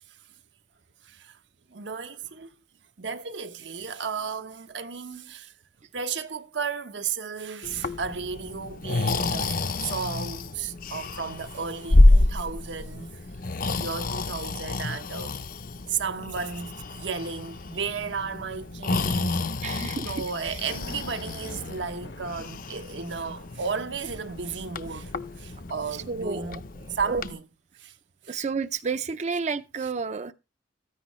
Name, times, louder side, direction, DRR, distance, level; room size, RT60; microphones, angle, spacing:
voice 1, 1.0-1.4 1.7-2.5 3.0-5.5 5.9-9.5 9.8-13.2 13.8-15.4 15.9-19.4 20.0-26.6 26.9-27.4 27.8-28.0 28.2-28.4, right 5 dB, 80° right, 1.0 m, -34 dB
Breathing, 7.6-27.3, left 2 dB, 50° left, 0.7 m, -28 dB
voice 2, 19.6-20.6 25.9-26.6 27.0-27.2 28.3-30.3, right 4 dB, 40° right, 0.5 m, -31 dB
sound 1, 20.6-26.0, left 1 dB, 70° left, 1.2 m, -45 dB
14.0 x 9.8 x 3.1 m
head